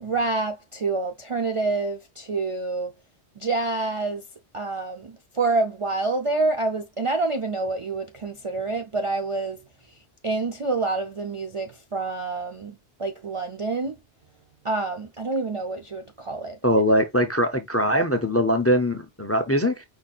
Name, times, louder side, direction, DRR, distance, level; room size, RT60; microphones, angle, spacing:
voice 1, 0.0-2.9 3.4-4.2 4.5-9.6 10.2-14.0 14.6-16.6, right 3 dB, 40° right, 0.4 m, -27 dB
voice 2, 16.6-19.8, equal, 20° left, 0.5 m, -22 dB
5.3 x 4.2 x 2.3 m
omnidirectional pair, 1.1 m